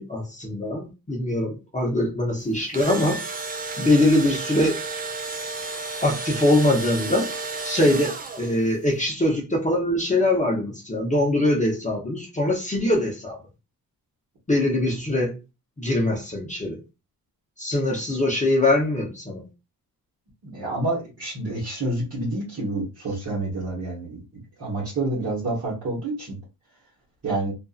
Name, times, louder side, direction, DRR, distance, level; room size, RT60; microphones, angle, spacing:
voice 1, 0.0-3.2 3.8-4.8 6.0-7.3 7.6-13.4 14.5-15.4 15.8-16.8 17.6-19.4, left 1 dB, 20° left, 0.7 m, -22 dB
Engine / Drill, 2.5-8.7, right 3 dB, 25° right, 0.4 m, -32 dB
voice 2, 20.4-24.2 24.6-26.4 27.2-27.5, right 2 dB, 45° right, 1.1 m, -28 dB
2.5 x 2.5 x 2.3 m
cardioid pair, 105°, 36 cm